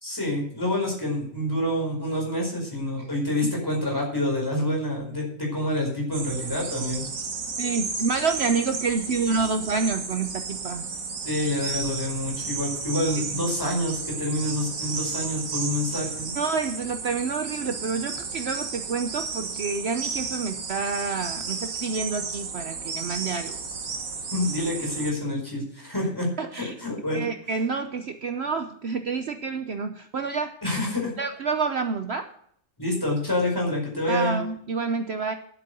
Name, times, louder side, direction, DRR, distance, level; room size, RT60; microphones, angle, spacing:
voice 1, 0.0-7.0 11.2-16.3 24.3-26.3 26.5-27.2 30.6-31.1 32.8-34.4, left 1 dB, 15° left, -1 dB, 4.9 m, -27 dB
sound 1, 6.1-25.1, right 4 dB, 75° right, 1.8 m, -33 dB
voice 2, 7.6-10.9 13.3-13.4 16.4-23.6 26.4-26.8 27.1-30.5 31.2-32.3 34.1-35.3, right 4 dB, 55° right, 7 dB, 0.9 m, -28 dB
10.5 x 8.5 x 6.6 m, 0.66 s
omnidirectional pair, 1.5 m